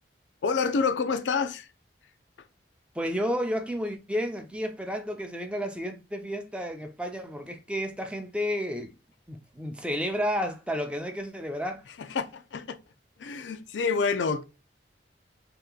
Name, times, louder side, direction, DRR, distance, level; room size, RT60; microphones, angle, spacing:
voice 1, 0.4-1.7 12.0-12.8 13.2-14.4, left 5 dB, 90° left, 0.5 m, -28 dB
voice 2, 3.0-8.9 9.3-11.8, equal, 5° right, 0.5 m, -31 dB
3.2 x 2.9 x 3.7 m
head